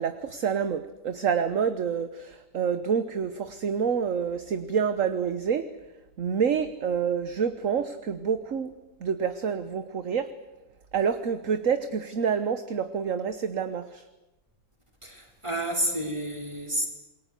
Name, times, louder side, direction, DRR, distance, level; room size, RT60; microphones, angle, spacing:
voice 1, 0.0-5.7 6.2-8.7 9.0-10.3 10.9-14.1, right 7 dB, 50° right, 11 dB, 1.4 m, -27 dB
voice 2, 15.0-16.9, right 1 dB, 15° right, 2 dB, 5.3 m, -30 dB
28.0 x 22.0 x 8.2 m, 1.0 s
omnidirectional pair, 1.8 m